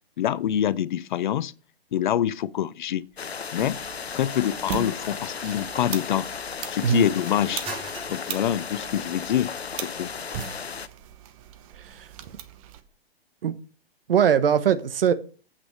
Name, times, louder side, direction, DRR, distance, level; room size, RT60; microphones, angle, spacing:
voice 1, 0.2-1.5 1.9-3.1 3.5-3.8 4.1-6.3 6.7-7.7 8.1-9.5 9.8-10.1, left 10 dB, 50° left, 0.5 m, -25 dB
sound 1, 2.9-13.0, right 3 dB, 20° right, 2.1 m, -47 dB
sound 2, 3.2-10.9, left 6 dB, 85° left, 0.8 m, -35 dB
sound 3, 3.6-12.8, right 10 dB, 35° right, 1.0 m, -40 dB
voice 2, 14.1-15.1, right 8 dB, 65° right, 1.1 m, -21 dB
8.3 x 6.1 x 6.3 m
figure-of-eight pair, 125°, 31 cm